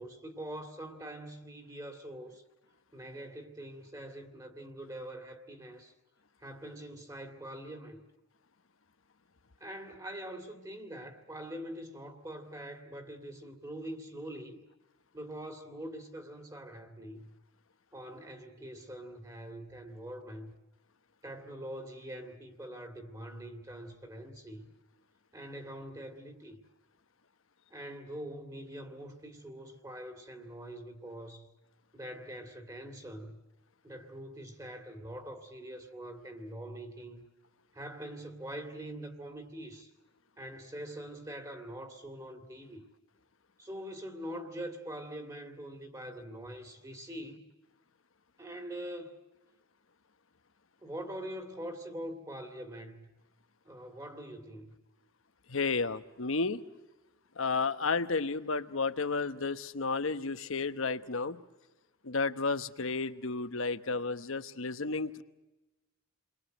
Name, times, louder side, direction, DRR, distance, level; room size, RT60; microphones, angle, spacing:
voice 1, 0.0-2.4 2.9-5.9 6.4-8.0 9.6-14.6 15.1-17.3 17.9-20.5 21.2-24.7 25.3-26.6 27.7-31.5 31.9-33.4 33.8-37.2 37.7-39.9 40.4-42.8 43.6-47.4 48.4-49.2 50.8-53.1 53.6-54.7, right 1 dB, 15° right, 2.2 m, -44 dB
voice 2, 55.5-56.6 57.4-61.4 62.0-65.2, left 4 dB, 70° left, 1.1 m, -32 dB
29.5 x 22.5 x 7.9 m
head